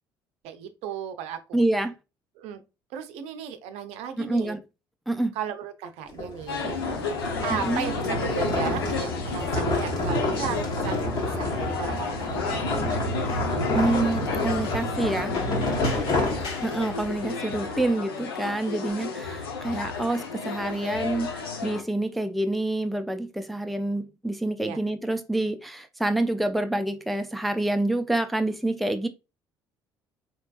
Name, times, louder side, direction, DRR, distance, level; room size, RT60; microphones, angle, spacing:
voice 1, 0.4-1.6 2.4-2.6 2.9-4.6 5.3-6.9 7.4-12.5 15.9-16.2 18.8-18.9 24.6-24.8, right 8 dB, 60° right, 0.6 m, -35 dB
voice 2, 1.5-1.9 4.2-4.6 5.1-5.4 7.5-7.9 13.7-15.3 16.6-29.1, right 2 dB, ahead, 0.4 m, -27 dB
sound 1, 6.1-17.1, left 1 dB, 35° left, 1.2 m, -28 dB
sound 2, 6.5-21.8, left 5 dB, 75° left, 0.6 m, -32 dB
sound 3, 7.9-17.9, left 3 dB, 55° left, 1.4 m, -46 dB
4.5 x 2.9 x 2.3 m
figure-of-eight pair, 55°, 12 cm